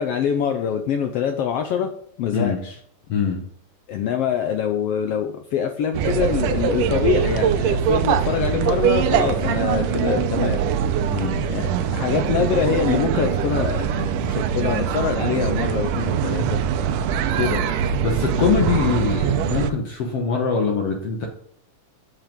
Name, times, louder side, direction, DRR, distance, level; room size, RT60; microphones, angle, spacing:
voice 1, 0.0-1.9 2.2-2.8 3.9-10.6 11.5-16.6 17.4-17.7, left 8 dB, 85° left, 6 dB, 1.3 m, -24 dB
voice 2, 3.1-3.4 11.1-11.4 18.0-21.3, left 5 dB, 60° left, 2 dB, 1.9 m, -23 dB
sound 1, 5.9-19.7, right 8 dB, 85° right, 2.3 m, -22 dB
7.7 x 7.6 x 5.2 m, 0.65 s
omnidirectional pair, 3.6 m